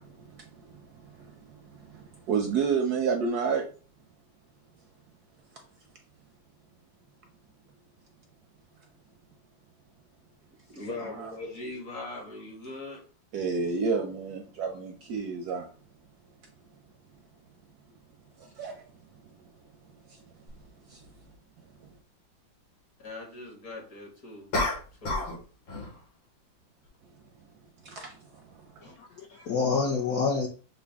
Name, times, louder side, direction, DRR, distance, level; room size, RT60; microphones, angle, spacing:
voice 1, 0.0-3.7 13.3-15.7 18.4-18.8 20.1-20.2 20.9-21.0 27.8-28.9, right 5 dB, 70° right, 1.0 m, -31 dB
voice 2, 10.7-13.1 23.0-24.5 25.0-25.3, left 2 dB, 50° left, 1.8 m, -40 dB
sound 1, 20.5-20.6 24.5-25.4 25.7-26.0, left 2 dB, 85° left, 2.3 m, -29 dB
voice 3, 28.8-30.5, left 4 dB, 65° left, 1.0 m, -28 dB
6.7 x 2.3 x 3.4 m
omnidirectional pair, 2.1 m